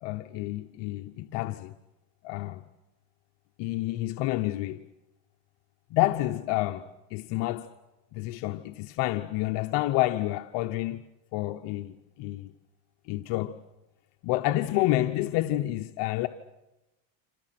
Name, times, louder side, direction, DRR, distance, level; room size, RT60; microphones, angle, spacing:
voice 1, 0.0-1.7 2.2-2.6 3.6-4.8 5.9-7.7 8.1-11.0 11.3-12.5 13.1-13.6 14.2-16.3, left 16 dB, 60° left, 1.0 m, -29 dB
27.5 x 27.5 x 6.0 m
supercardioid pair, 125°, 47 cm